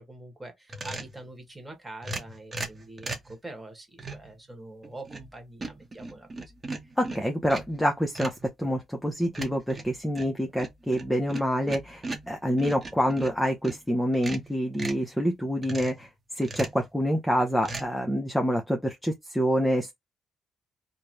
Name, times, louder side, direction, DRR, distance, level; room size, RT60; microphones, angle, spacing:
voice 1, 0.0-6.5 6.8-6.9, right 2 dB, 10° right, 1.3 m, -44 dB
sound 1, 0.7-1.2 2.0-3.3 4.0-4.3 4.8-5.3 5.6-7.8 8.2-8.5 9.3-13.8 14.1-15.1 15.6-16.0 16.4-16.9 17.6-17.9, right 2 dB, 30° right, 0.9 m, -38 dB
voice 2, 7.0-16.1 16.3-19.9, equal, 5° left, 0.6 m, -27 dB
3.0 x 2.1 x 2.5 m
cardioid pair, 90°, 0 cm